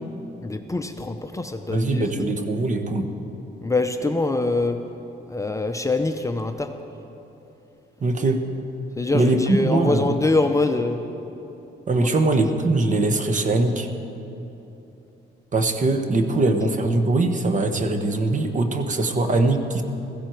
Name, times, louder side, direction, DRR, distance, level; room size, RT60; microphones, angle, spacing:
voice 1, 0.4-2.2 3.6-4.8 5.3-6.7 9.0-11.0 11.9-12.1, left 2 dB, 15° left, 6 dB, 0.7 m, -24 dB
voice 2, 1.7-3.1 8.0-8.4 9.1-10.1 11.9-13.9 15.5-19.8, right 2 dB, 40° right, 6 dB, 1.3 m, -21 dB
15.5 x 15.0 x 4.6 m, 3.0 s
cardioid pair, 90°, 20 cm